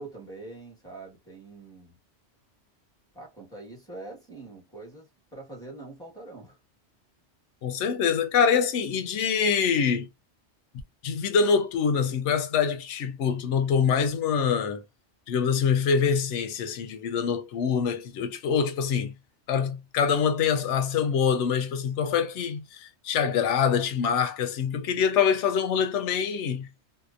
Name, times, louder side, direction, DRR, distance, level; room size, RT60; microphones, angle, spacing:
voice 1, 0.0-2.0 3.1-6.6, right 2 dB, 5° left, 1.2 m, -44 dB
voice 2, 7.6-10.1 11.0-14.8 15.3-19.1 19.5-26.7, left 6 dB, 85° left, 0.9 m, -25 dB
2.8 x 2.0 x 2.4 m
omnidirectional pair, 1.2 m